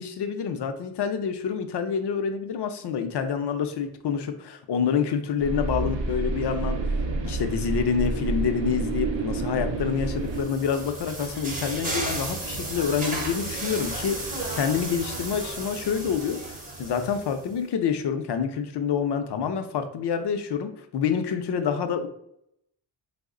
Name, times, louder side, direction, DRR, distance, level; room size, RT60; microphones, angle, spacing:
voice 1, 0.0-6.8 7.2-16.4 16.8-22.1, left 7 dB, 65° left, 7 dB, 0.5 m, -27 dB
sound 1, 5.4-10.4, right 3 dB, 75° right, 0.5 m, -29 dB
sound 2, 10.0-17.5, right 2 dB, 20° right, 0.6 m, -34 dB
3.1 x 2.1 x 3.6 m, 0.74 s
wide cardioid pair, 140°, 45 cm